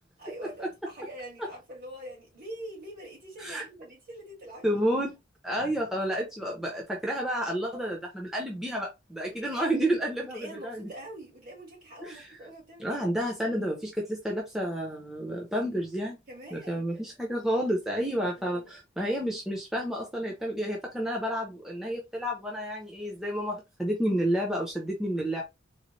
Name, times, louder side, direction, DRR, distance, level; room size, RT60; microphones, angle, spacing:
voice 1, 0.2-4.8 9.2-9.7 10.2-13.1 16.3-17.0 18.1-18.8, right 1 dB, 50° right, 1.9 m, -44 dB
voice 2, 4.6-5.2 5.4-10.9 12.0-12.4 12.8-16.2 16.5-25.4, equal, ahead, 0.6 m, -30 dB
3.9 x 2.1 x 3.1 m
head